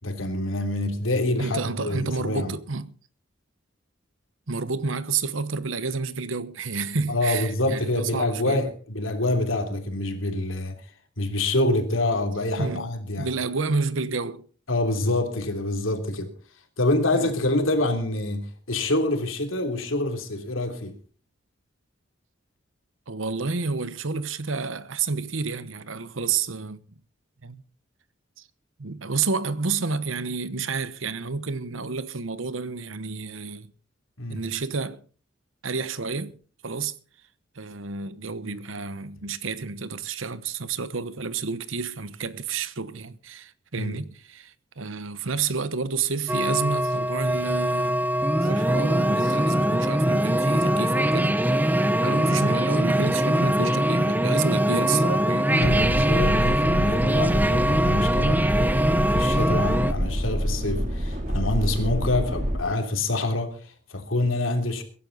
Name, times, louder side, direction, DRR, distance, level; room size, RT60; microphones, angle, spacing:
voice 1, 0.0-2.5 7.1-10.9 11.2-13.3 14.7-16.3 16.8-21.0 34.2-34.4 43.7-44.0 55.5-64.8, left 2 dB, 90° left, 3.1 m, -26 dB
voice 2, 1.4-2.9 4.5-8.6 12.6-12.9 13.2-14.5 17.1-17.3 23.1-26.8 27.4-27.6 28.4-28.5 28.8-33.7 34.3-35.0 35.6-36.3 36.6-36.9 37.5-51.4 52.0-55.5, right 4 dB, 85° right, 1.1 m, -30 dB
sound 1, 46.3-59.9, right 1 dB, 10° right, 0.8 m, -22 dB
sound 2, 55.6-62.6, equal, 40° right, 3.0 m, -27 dB
22.5 x 11.0 x 4.0 m
head